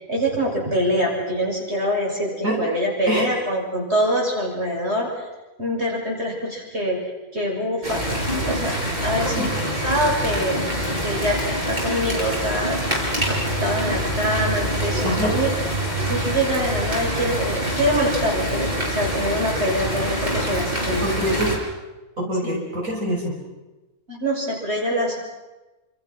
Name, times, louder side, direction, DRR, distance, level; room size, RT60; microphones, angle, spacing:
voice 1, 0.1-5.1 5.6-7.0 7.3-8.0 8.3-8.7 9.0-9.5 9.8-15.5 16.0-21.0 24.1-25.2, equal, 50° right, -1 dB, 6.8 m, -24 dB
sound 1, 7.8-21.6, equal, 30° right, 6.1 m, -25 dB
voice 2, 15.0-15.4 21.0-21.6 22.2-23.4, right 1 dB, 75° right, -2 dB, 6.3 m, -25 dB
29.0 x 27.5 x 6.1 m, 1.1 s
omnidirectional pair, 1.4 m